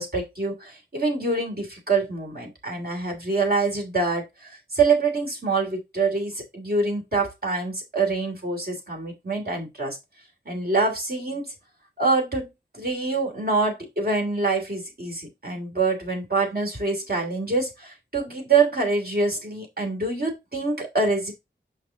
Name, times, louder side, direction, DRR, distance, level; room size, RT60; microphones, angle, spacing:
voice 1, 0.0-10.0 10.5-11.5 12.0-21.3, right 3 dB, 50° right, 2.8 m, -25 dB
5.9 x 5.2 x 3.8 m
wide cardioid pair, 55°, 20 cm